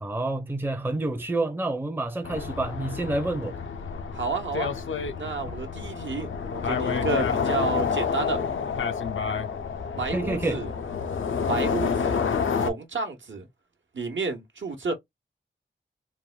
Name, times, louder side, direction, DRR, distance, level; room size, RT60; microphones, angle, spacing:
voice 1, 0.0-3.6 10.1-10.6, right 2 dB, 10° right, 0.5 m, -28 dB
sound 1, 2.2-12.7, left 6 dB, 80° left, 0.5 m, -29 dB
voice 2, 4.1-4.7 5.1-8.4 10.0-10.7 11.5-12.3 12.5-13.5 13.9-14.9, right 4 dB, 75° right, 0.9 m, -31 dB
3.4 x 2.1 x 2.3 m
wide cardioid pair, 70°, 20 cm